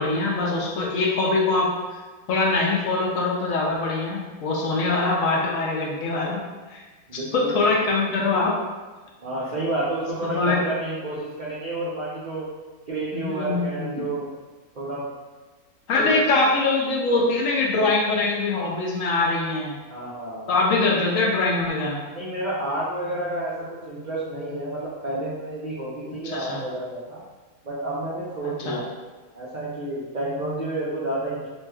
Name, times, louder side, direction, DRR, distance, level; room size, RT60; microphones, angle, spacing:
voice 1, 0.0-1.7 2.3-6.4 6.7-6.8 7.1-8.6 10.2-10.6 13.1-14.0 15.9-19.8 20.5-22.0 26.1-26.6 28.4-28.8, left 3 dB, 70° left, -2 dB, 0.9 m, -23 dB
voice 2, 7.1-7.6 9.2-12.5 12.9-14.3 14.8-15.0 16.0-16.2 19.9-20.5 22.1-27.2 27.6-28.9 29.3-31.5, right 1 dB, 75° right, -8 dB, 0.4 m, -30 dB
3.1 x 3.0 x 2.2 m, 1.3 s
omnidirectional pair, 1.6 m